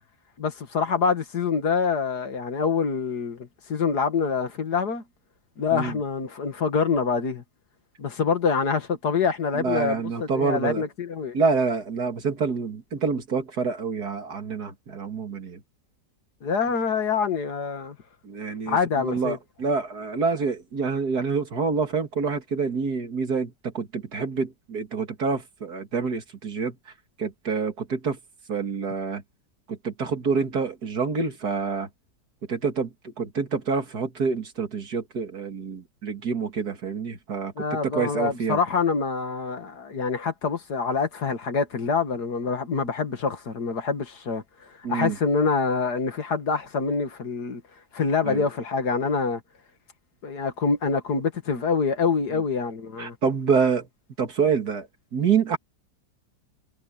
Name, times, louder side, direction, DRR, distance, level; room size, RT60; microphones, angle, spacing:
voice 1, 0.4-5.0 5.6-7.4 8.0-11.4 16.4-18.0 18.7-19.4 37.6-44.4 44.9-47.6 47.9-49.4 50.2-53.2, left 5 dB, 70° left, 2.4 m, -25 dB
voice 2, 9.5-10.8 11.3-15.6 18.2-26.7 27.2-28.2 28.5-29.2 29.7-31.9 32.5-38.6 44.8-45.2 48.3-48.4 53.0-53.9 54.2-54.9 55.1-55.6, right 5 dB, 65° right, 2.8 m, -27 dB
omnidirectional pair, 1.8 m